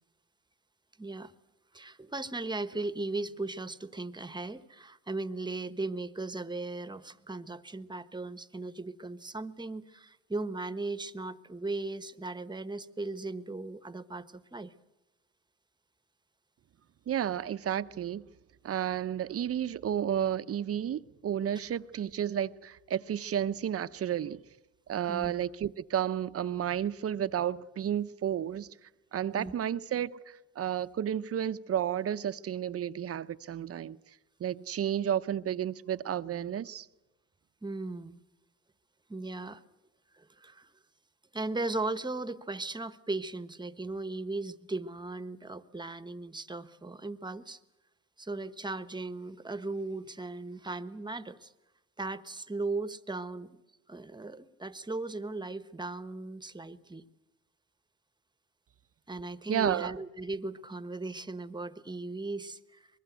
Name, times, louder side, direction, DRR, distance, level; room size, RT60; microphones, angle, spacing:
voice 1, 1.0-1.3 1.7-14.7 25.1-25.3 29.4-29.5 37.6-38.2 39.1-39.6 40.1-40.7 41.3-47.6 48.2-51.5 52.0-53.6 53.9-57.0 59.1-62.9, right 2 dB, 15° right, 1.2 m, -37 dB
voice 2, 17.1-18.2 18.6-24.4 24.9-28.7 29.1-34.0 34.4-36.9 59.5-59.9, right 10 dB, 50° right, 0.8 m, -32 dB
24.5 x 21.5 x 8.2 m
cardioid pair, 90°, 30 cm